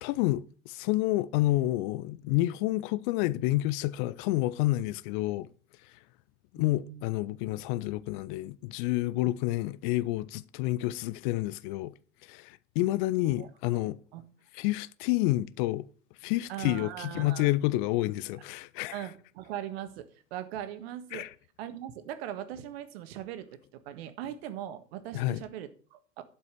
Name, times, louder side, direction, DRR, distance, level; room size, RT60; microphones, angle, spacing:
voice 1, 0.0-5.5 5.8-5.9 6.5-11.9 12.2-14.0 14.5-15.9 16.2-19.1 21.1-21.3 25.1-25.4, left 17 dB, 40° left, 0.6 m, -29 dB
voice 2, 6.6-7.1 9.2-9.3 13.2-14.2 16.5-17.5 18.9-21.2 21.6-26.2, right 11 dB, 55° right, 1.7 m, -40 dB
12.0 x 5.6 x 6.8 m
figure-of-eight pair, 80°, 37 cm